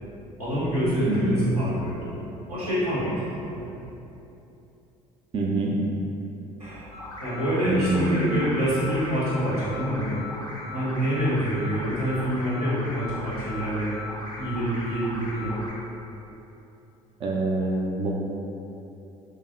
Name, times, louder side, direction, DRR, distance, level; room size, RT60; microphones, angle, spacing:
voice 1, 0.4-2.1 2.5-3.7 6.6-10.2 10.6-14.0 14.4-15.6, equal, 90° right, -11 dB, 1.1 m, -26 dB
voice 2, 1.1-1.4 5.3-5.8 7.6-8.4 17.2-18.1, right 2 dB, 30° right, -2 dB, 0.4 m, -25 dB
sound 1, 6.9-15.7, left 2 dB, 25° left, 0.6 m, -38 dB
3.3 x 2.1 x 3.4 m, 2.9 s
figure-of-eight pair, 55°, 19 cm